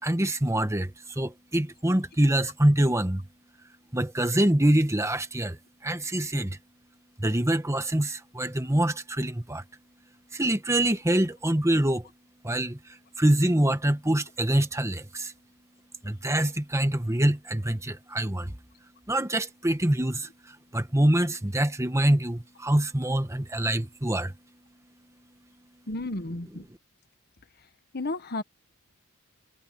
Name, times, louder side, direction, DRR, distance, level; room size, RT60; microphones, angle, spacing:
voice 1, 0.0-3.3 3.9-6.6 7.2-9.6 10.3-12.1 12.4-15.3 16.0-18.6 19.1-24.4 26.5-26.8, right 1 dB, 15° right, 1.4 m, -25 dB
voice 2, 25.9-26.6 27.9-28.4, left 2 dB, 45° left, 1.3 m, -32 dB
head